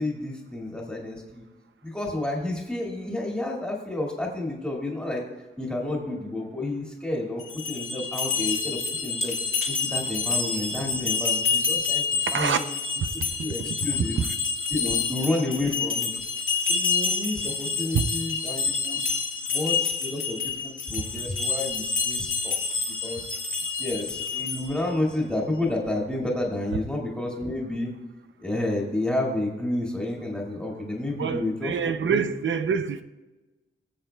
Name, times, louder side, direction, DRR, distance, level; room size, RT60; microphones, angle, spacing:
voice 1, 0.0-1.4 1.8-5.2 5.6-9.3 9.7-12.1 12.3-12.6 13.4-14.2 14.7-16.1 16.7-19.0 19.5-22.6 23.0-23.3 23.8-27.9 28.4-31.7 32.1-32.3, left 2 dB, 5° left, 2.0 m, -30 dB
sound 1, 7.4-24.8, left 5 dB, 75° left, 1.7 m, -28 dB
voice 2, 31.1-33.0, right 6 dB, 65° right, 0.6 m, -25 dB
20.0 x 7.7 x 2.3 m
wide cardioid pair, 160°, 21 cm